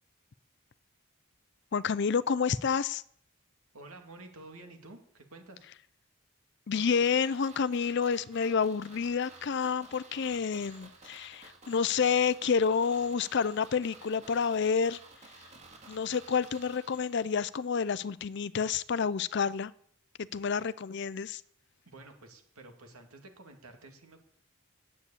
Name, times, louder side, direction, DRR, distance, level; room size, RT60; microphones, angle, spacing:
voice 1, 1.7-3.0 6.7-15.0 15.9-19.7 20.2-21.4, left 6 dB, 55° left, 17 dB, 0.4 m, -29 dB
voice 2, 3.7-5.7 21.9-24.2, right 2 dB, 90° right, 5 dB, 2.3 m, -50 dB
sound 1, 6.7-17.7 17.9-18.0, right 3 dB, 30° right, 2.0 m, -53 dB
9.9 x 8.4 x 8.6 m, 0.63 s
head